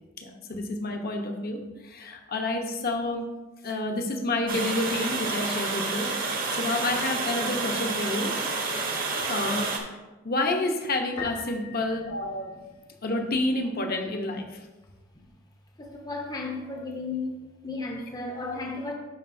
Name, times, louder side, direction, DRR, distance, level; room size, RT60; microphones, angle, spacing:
voice 1, 0.2-3.3 3.6-8.3 9.2-9.7 10.2-12.5 13.0-14.6 18.5-18.6, left 2 dB, 50° left, 4 dB, 0.8 m, -29 dB
Water, 4.5-9.8, right 3 dB, 45° right, 1.0 m, -29 dB
Piano, 11.2-13.0, left 4 dB, 70° left, 1.6 m, -40 dB
voice 2, 15.8-17.3 17.6-18.9, left 3 dB, 20° left, 1 dB, 0.7 m, -34 dB
11.0 x 4.7 x 2.6 m, 1.1 s
head